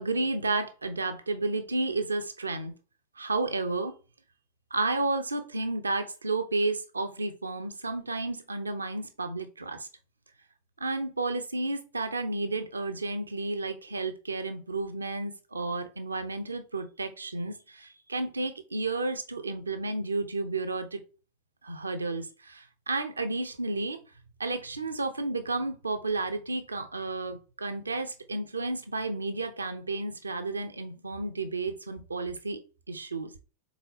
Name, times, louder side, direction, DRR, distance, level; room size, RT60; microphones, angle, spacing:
voice 1, 0.0-2.7 3.2-3.9 4.7-9.9 10.8-21.0 21.6-24.0 24.4-32.6 32.9-33.3, right 3 dB, 75° right, 8 dB, 0.6 m, -32 dB
4.1 x 3.9 x 2.8 m, 0.34 s
figure-of-eight pair, 90°, 0 cm